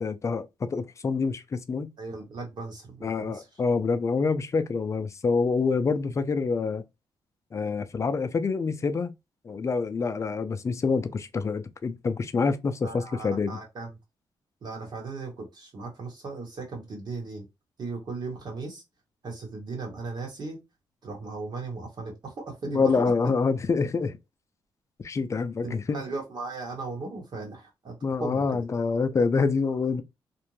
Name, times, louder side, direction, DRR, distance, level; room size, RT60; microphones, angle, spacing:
voice 1, 0.0-1.9 3.0-6.8 7.5-9.1 9.4-13.6 22.7-24.2 25.0-26.0 28.0-30.0, left 4 dB, 35° left, 0.4 m, -26 dB
voice 2, 2.0-3.5 12.8-13.9 14.6-17.5 17.8-18.8 19.2-20.6 21.0-23.1 25.6-28.6, right 3 dB, 55° right, 1.1 m, -37 dB
2.5 x 2.1 x 3.0 m
cardioid pair, 95°, 9 cm